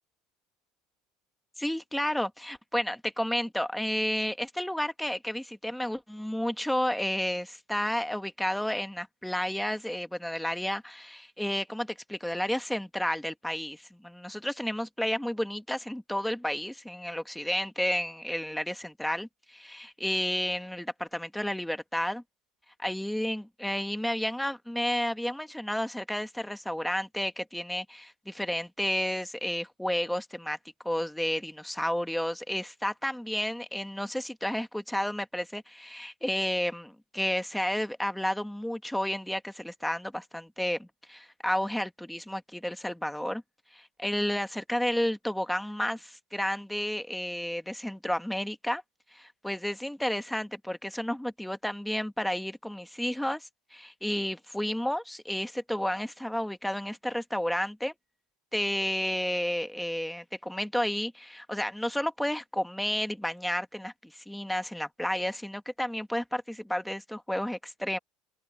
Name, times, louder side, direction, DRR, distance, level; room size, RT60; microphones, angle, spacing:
voice 1, 1.6-22.2 22.8-30.6 30.8-43.4 43.7-48.8 49.1-57.9 58.5-68.0, left 1 dB, ahead, 1.0 m, -31 dB
open air
cardioid pair, 180°, 0 cm